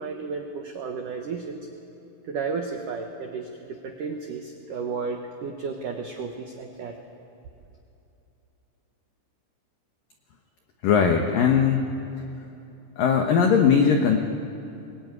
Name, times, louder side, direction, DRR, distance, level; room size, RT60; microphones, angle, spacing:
voice 1, 0.0-1.6 2.2-7.0, right 5 dB, 85° right, 3 dB, 1.8 m, -33 dB
voice 2, 10.8-11.9 13.0-14.2, left 6 dB, 80° left, 3 dB, 1.9 m, -19 dB
23.0 x 22.0 x 9.6 m, 2.8 s
omnidirectional pair, 5.8 m